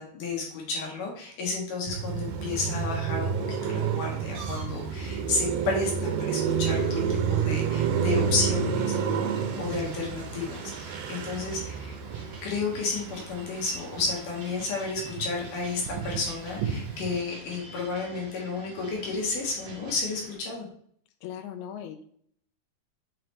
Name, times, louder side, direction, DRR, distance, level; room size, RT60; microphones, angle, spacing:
voice 1, 0.0-3.3 3.6-12.0 12.4-20.7, left 4 dB, 65° left, -1 dB, 2.3 m, -32 dB
Car passing by, 1.9-14.3 14.7-17.2, right 7 dB, 85° right, 1.9 m, -30 dB
sound 1, 2.8-20.4, right 2 dB, 55° right, 1.3 m, -47 dB
voice 2, 21.2-22.1, left 9 dB, 80° left, 6 dB, 2.4 m, -39 dB
6.2 x 4.7 x 3.2 m, 0.63 s
omnidirectional pair, 4.7 m